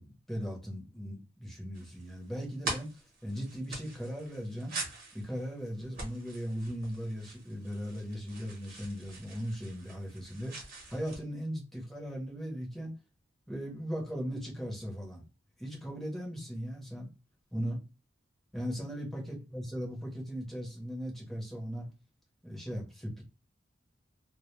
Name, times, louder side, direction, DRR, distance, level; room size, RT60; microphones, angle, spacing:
voice 1, 0.0-4.7 5.1-12.9 13.5-15.2 15.6-17.1 17.5-17.8 18.5-21.9 22.4-23.2, equal, ahead, -3 dB, 0.8 m, -38 dB
sound 1, 1.7-11.2, right 2 dB, 50° right, 0.9 m, -44 dB
2.1 x 2.1 x 3.0 m, 0.32 s
head